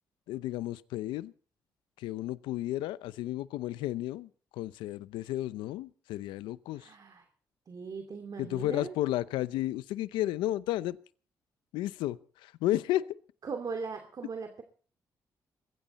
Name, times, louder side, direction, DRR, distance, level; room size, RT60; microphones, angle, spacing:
voice 1, 0.3-1.3 2.0-6.9 8.4-11.0 11.7-13.1, left 14 dB, 85° left, 0.7 m, -33 dB
voice 2, 6.8-7.2 7.7-8.9 13.4-14.6, right 5 dB, 55° right, 2.6 m, -39 dB
21.5 x 16.0 x 4.2 m
supercardioid pair, 55°, 8 cm